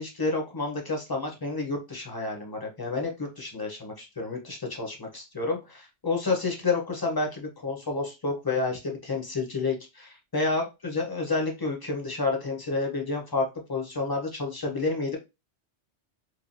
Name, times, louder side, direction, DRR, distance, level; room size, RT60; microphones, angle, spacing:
voice 1, 0.0-15.2, left 3 dB, 25° left, 1 dB, 0.6 m, -30 dB
3.0 x 2.3 x 2.6 m, 0.25 s
omnidirectional pair, 1.2 m